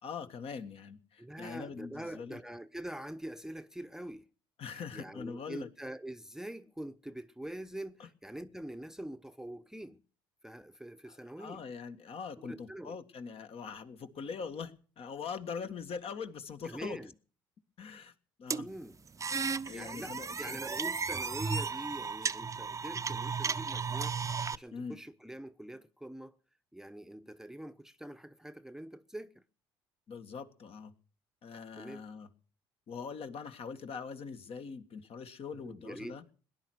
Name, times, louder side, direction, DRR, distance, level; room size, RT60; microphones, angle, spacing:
voice 1, 0.0-2.4 4.6-5.7 8.0-8.1 11.1-17.0 17.8-18.1 18.4-18.7 19.6-20.6 24.7-25.0 30.1-30.9 31.4-32.3 32.9-36.2, left 5 dB, 50° left, 1.7 m, -42 dB
voice 2, 1.2-4.3 4.7-10.0 10.4-11.6 12.4-13.0 16.6-17.1 18.6-19.0 19.7-24.2 24.5-26.4 26.7-29.4 31.8-32.0 35.5-36.2, right 1 dB, 5° right, 0.9 m, -44 dB
sound 1, 18.5-24.6, right 5 dB, 25° right, 0.7 m, -35 dB
18.5 x 10.5 x 6.3 m
hypercardioid pair, 55°, 12 cm